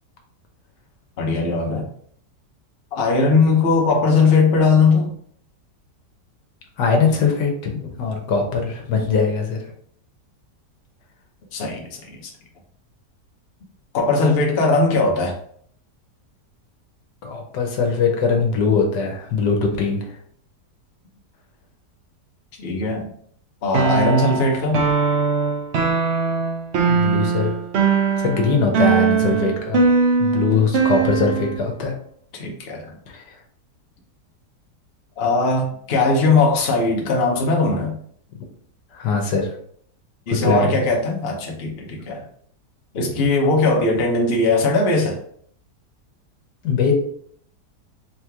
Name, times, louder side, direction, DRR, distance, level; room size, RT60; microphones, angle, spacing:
voice 1, 1.2-1.9 2.9-5.1 11.5-12.2 13.9-15.3 22.6-23.1 23.6-24.9 32.3-32.9 35.2-38.0 40.3-42.2 42.9-45.2, left 3 dB, 45° left, 0 dB, 0.9 m, -19 dB
voice 2, 6.8-9.6 17.2-20.2 26.9-27.6 28.2-29.8 30.2-32.0 33.1-33.3 38.9-39.5 40.3-40.8 43.2-43.3 46.6-46.9, left 5 dB, 75° left, 2 dB, 1.4 m, -21 dB
sound 1, 23.7-31.6, right 5 dB, 60° right, 0.7 m, -20 dB
3.8 x 3.1 x 3.5 m, 0.62 s
omnidirectional pair, 1.8 m